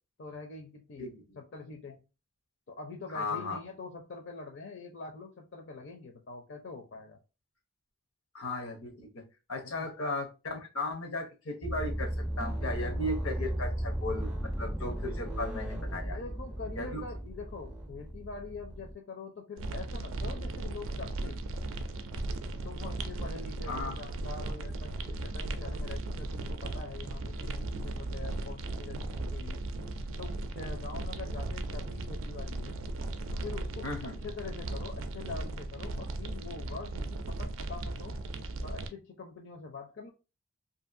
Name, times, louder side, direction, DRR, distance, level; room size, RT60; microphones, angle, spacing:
voice 1, 0.2-1.1 1.4-2.0 2.7-7.2 9.6-9.9 15.9-21.5 22.6-29.6 30.2-32.8 33.3-38.1 38.6-40.1, left 4 dB, 55° left, 2 dB, 0.5 m, -44 dB
voice 2, 1.0-1.4 3.1-3.6 8.3-9.2 9.5-16.2 16.8-17.0 21.2-21.3 23.7-24.0 33.8-34.2, left 2 dB, 85° left, 5 dB, 0.8 m, -36 dB
sound 1, 11.6-18.9, right 1 dB, 5° right, 0.4 m, -35 dB
sound 2, 19.6-38.9, right 2 dB, 70° right, 0.4 m, -37 dB
2.7 x 2.5 x 2.5 m, 0.30 s
head